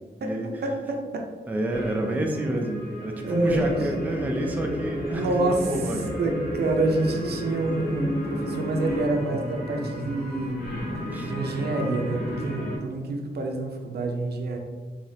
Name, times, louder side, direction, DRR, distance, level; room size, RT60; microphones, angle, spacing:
voice 1, 0.2-1.3 3.2-3.7 5.1-5.7 6.2-10.6 11.2-14.6, right 2 dB, 75° right, 2 dB, 0.5 m, -27 dB
voice 2, 1.5-6.1 11.1-11.3, right 1 dB, 10° right, 2 dB, 0.3 m, -28 dB
sound 1, 1.7-12.8, equal, 65° left, 1.1 m, -32 dB
4.9 x 2.4 x 2.7 m, 1.4 s
wide cardioid pair, 150°, 17 cm